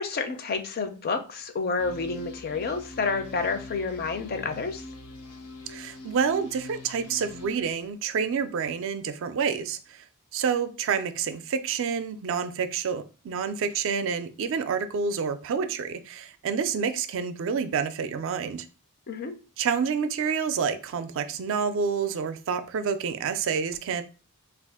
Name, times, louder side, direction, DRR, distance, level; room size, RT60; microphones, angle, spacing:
voice 1, 0.0-4.8 19.1-19.3, left 4 dB, 45° left, 8 dB, 0.5 m, -29 dB
sound 1, 1.8-7.5, left 2 dB, 90° left, 0.7 m, -43 dB
voice 2, 5.7-10.0 10.3-18.7 19.6-24.0, right 6 dB, 60° right, 11 dB, 0.4 m, -28 dB
3.2 x 2.4 x 3.5 m, 0.34 s
head